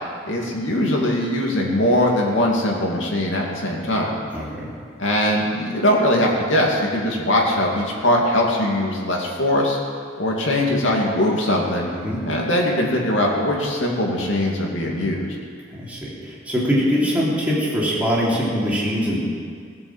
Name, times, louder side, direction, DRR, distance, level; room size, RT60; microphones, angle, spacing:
voice 1, 0.2-4.2 5.0-9.8 10.2-11.9 12.3-15.4, left 1 dB, 80° left, -1 dB, 2.6 m, -21 dB
voice 2, 4.3-4.6 11.9-12.2 15.7-19.2, equal, 5° right, -7 dB, 3.3 m, -22 dB
17.5 x 7.1 x 7.5 m, 2.2 s
head